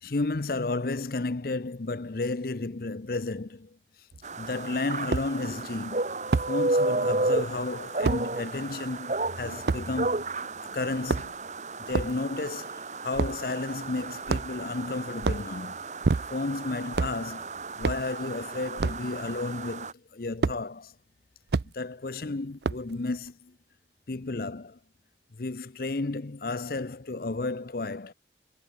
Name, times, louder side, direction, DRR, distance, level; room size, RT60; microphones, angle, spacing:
voice 1, 0.0-3.8 4.4-6.0 6.5-11.4 11.8-15.8 16.3-17.5 17.8-20.9 21.6-23.5 24.1-24.8 25.3-28.1, left 3 dB, 55° left, 0.7 m, -32 dB
sound 1, 4.1-4.2 5.1-5.3 6.3-6.5 8.0-8.2 9.7-9.8 10.9-11.5 11.9-12.2 13.1-13.4 14.3-14.7 15.2-15.5 16.0-16.5 16.9-17.2 17.8-18.1 18.8-19.0 20.4-20.6 21.5-21.7 22.6-22.9, right 4 dB, 65° right, 0.5 m, -27 dB
sound 2, 4.2-19.9, right 2 dB, 40° right, 1.1 m, -33 dB
head